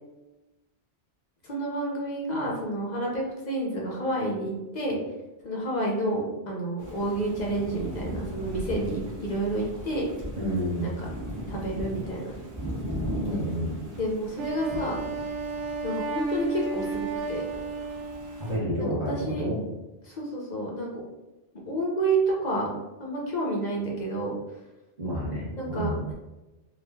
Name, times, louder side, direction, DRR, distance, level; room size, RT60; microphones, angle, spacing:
voice 1, 1.4-5.0 5.4-10.1 10.8-11.1 11.5-12.3 14.0-15.0 15.8-17.4 18.8-19.5 20.0-21.0 21.7-22.7 23.0-24.4 25.6-26.1, right 1 dB, 45° left, -3 dB, 0.6 m, -30 dB
Thunder / Rain, 6.8-18.6, equal, 20° right, 0.5 m, -38 dB
voice 2, 10.4-10.9 13.2-13.7 18.4-19.1 19.4-19.6 25.0-26.0, equal, 40° right, -9 dB, 0.9 m, -29 dB
Wind instrument woodwind instrument, 14.4-18.7, right 3 dB, 85° right, 0.9 m, -33 dB
2.8 x 2.4 x 3.4 m, 1.0 s
omnidirectional pair, 1.2 m